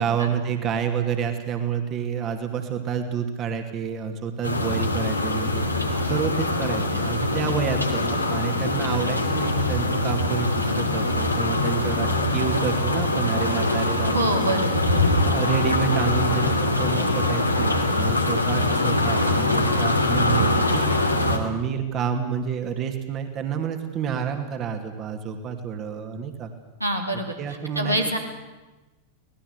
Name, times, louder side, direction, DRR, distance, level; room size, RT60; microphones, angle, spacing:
voice 1, 0.0-14.7 15.2-26.5 27.4-28.0, right 7 dB, 30° right, 6 dB, 2.8 m, -29 dB
sound 1, 4.4-21.4, left 2 dB, 85° left, 3.0 m, -23 dB
voice 2, 14.1-15.0 26.8-27.3 27.8-28.2, right 1 dB, 85° right, 2 dB, 3.6 m, -25 dB
26.0 x 19.0 x 8.3 m, 1.1 s
figure-of-eight pair, 90°, 0 cm